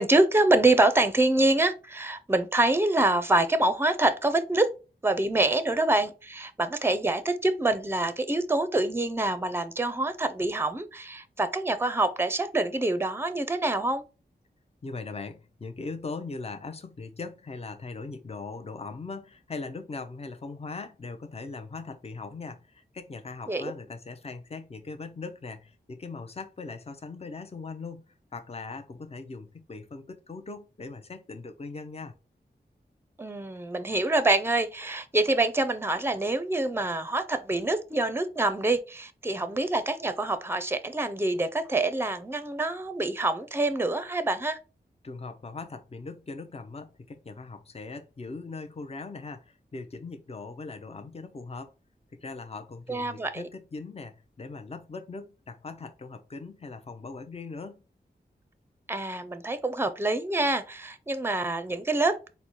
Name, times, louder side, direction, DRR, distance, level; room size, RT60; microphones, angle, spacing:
voice 1, 0.0-4.7 5.0-14.0 23.5-23.7 33.2-44.6 52.9-53.5 58.9-62.2, right 2 dB, 15° right, 0.5 m, -26 dB
voice 2, 14.8-28.0 28.3-32.1 45.0-51.7 52.1-57.8, left 3 dB, 35° left, 0.6 m, -40 dB
4.0 x 2.2 x 4.5 m
wide cardioid pair, 70°, 18 cm